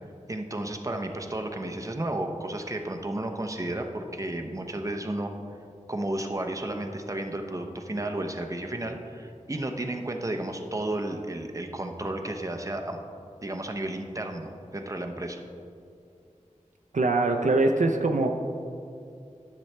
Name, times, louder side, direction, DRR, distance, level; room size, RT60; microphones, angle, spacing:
voice 1, 0.3-5.3 5.9-13.0 13.4-15.4, right 1 dB, 25° right, 3 dB, 0.7 m, -32 dB
voice 2, 16.9-18.4, right 2 dB, 70° right, 3 dB, 0.5 m, -23 dB
10.5 x 6.9 x 3.3 m, 2.5 s
wide cardioid pair, 45°, 13 cm